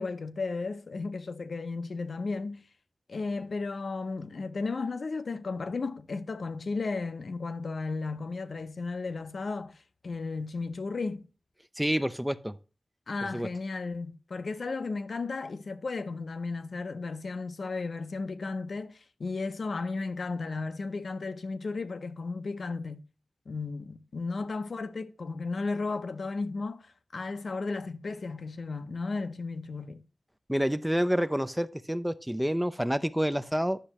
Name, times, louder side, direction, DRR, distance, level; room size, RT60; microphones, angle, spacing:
voice 1, 0.0-2.6 3.1-11.3 13.1-23.0 23.5-30.0, left 3 dB, 65° left, 0.6 m, -34 dB
voice 2, 11.8-12.6 13.3-13.5 30.5-33.8, equal, 5° right, 0.4 m, -28 dB
10.0 x 6.5 x 2.9 m
wide cardioid pair, 105°, 0 cm